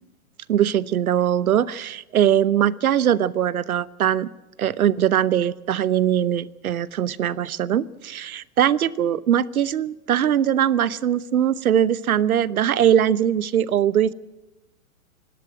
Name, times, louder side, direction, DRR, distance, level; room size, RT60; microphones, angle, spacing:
voice 1, 0.5-4.3 4.6-14.1, right 10 dB, 75° right, 20 dB, 0.9 m, -21 dB
19.5 x 17.0 x 7.7 m, 1.0 s
hypercardioid pair, 120°, 43 cm